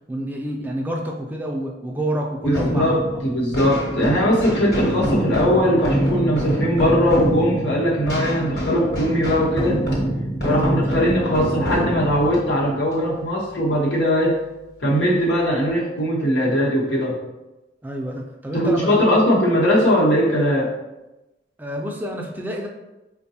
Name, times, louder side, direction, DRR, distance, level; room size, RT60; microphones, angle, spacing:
voice 1, 0.1-3.0 10.3-11.1 17.8-19.1 21.6-22.7, right 1 dB, 10° right, 0 dB, 0.3 m, -28 dB
voice 2, 2.4-9.8 10.4-14.4 14.8-17.2 18.5-20.7, equal, 80° left, -4 dB, 1.0 m, -20 dB
sound 1, 2.4-13.8, right 1 dB, 55° left, 1.1 m, -25 dB
4.6 x 2.2 x 2.7 m, 1.0 s
head